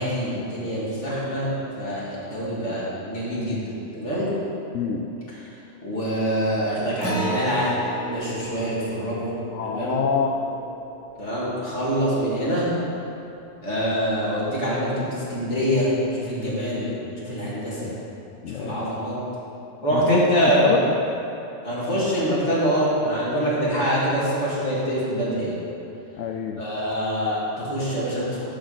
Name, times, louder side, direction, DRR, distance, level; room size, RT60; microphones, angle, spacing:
voice 1, 0.0-4.3 5.8-9.3 9.6-10.0 11.2-12.7 13.6-17.9 18.5-19.2 19.8-20.8 21.6-25.6 26.6-28.4, equal, 70° left, -8 dB, 2.5 m, -25 dB
voice 2, 4.7-5.1 9.5-10.3 17.8-17.9 18.4-18.9 19.9-20.9 26.2-26.6, left 6 dB, 85° left, 2 dB, 0.9 m, -26 dB
Acoustic guitar, 7.0-11.9, right 2 dB, 10° left, 1.2 m, -33 dB
10.0 x 4.1 x 6.3 m, 2.9 s
omnidirectional pair, 1.2 m